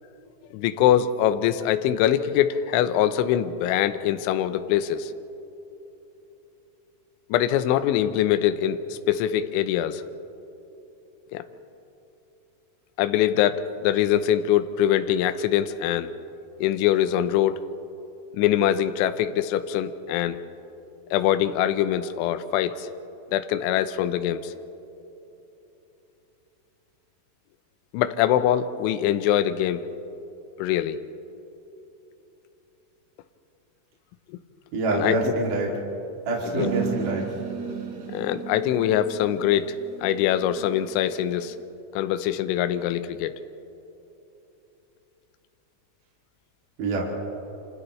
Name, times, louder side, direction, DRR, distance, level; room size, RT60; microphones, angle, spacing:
voice 1, 0.5-5.1 7.3-10.0 11.3-11.4 13.0-16.1 16.6-17.6 18.3-20.4 21.1-22.9 23.3-24.5 27.9-29.9 30.6-31.0 34.9-35.3 36.5-36.7 38.1-39.8 40.0-41.5 42.0-43.3, left 11 dB, 80° left, 10 dB, 2.9 m, -23 dB
voice 2, 34.7-35.7 36.3-37.2 46.8-47.1, right 2 dB, 45° right, -3 dB, 3.6 m, -26 dB
sound 1, 36.6-41.6, right 8 dB, 60° right, 3.4 m, -35 dB
29.0 x 28.0 x 3.2 m, 3.0 s
omnidirectional pair, 6.0 m